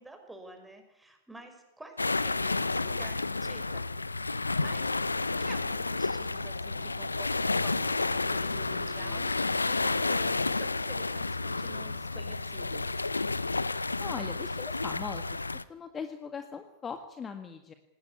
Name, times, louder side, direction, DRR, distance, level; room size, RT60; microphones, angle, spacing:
voice 1, 0.0-2.0 2.2-3.9 4.1-5.1 5.4-9.3 9.6-13.0, right 1 dB, 5° right, 5 dB, 5.8 m, -49 dB
sound 1, 2.0-15.6, left 3 dB, 85° left, 0.7 m, -31 dB
sound 2, 4.6-13.6, right 4 dB, 25° right, 7.1 m, -56 dB
voice 2, 14.0-17.7, left 6 dB, 20° left, 8 dB, 1.8 m, -40 dB
19.0 x 18.5 x 9.7 m, 0.89 s
figure-of-eight pair, 90°, 0 cm